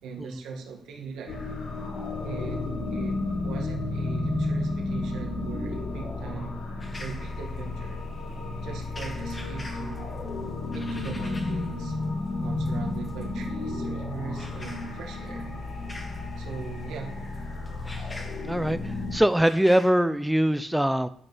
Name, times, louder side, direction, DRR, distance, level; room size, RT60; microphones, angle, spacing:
voice 1, 0.0-1.4 2.2-6.6 7.0-8.0 8.6-10.2 10.7-12.0 12.4-15.5 16.4-17.2 17.9-18.1, right 5 dB, 80° right, 1 dB, 2.0 m, -40 dB
sound 1, 1.3-19.2, left 2 dB, 70° left, 3.3 m, -32 dB
sound 2, 6.8-19.9, left 1 dB, 25° left, 2.0 m, -47 dB
voice 2, 18.4-18.8 19.1-21.1, right 1 dB, 5° right, 12 dB, 0.6 m, -22 dB
11.0 x 5.2 x 6.2 m, 0.66 s
cardioid pair, 90°, 0 cm